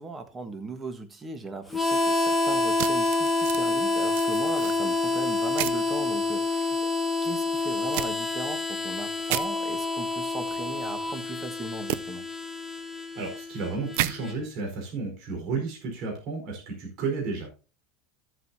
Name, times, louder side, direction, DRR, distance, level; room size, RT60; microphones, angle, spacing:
voice 1, 0.0-6.9 7.2-12.3, right 3 dB, 15° right, 1.5 m, -38 dB
Harmonica, 1.7-14.3, left 3 dB, ahead, 1.4 m, -28 dB
sound 1, 2.8-3.6 4.1-4.7 5.6-5.8 7.9-8.1 9.3-9.5 11.9-12.0 13.9-14.1, right 14 dB, 70° right, 0.5 m, -30 dB
voice 2, 13.1-17.5, right 4 dB, 50° right, 4.5 m, -32 dB
13.5 x 7.8 x 2.8 m
supercardioid pair, 140°, 0 cm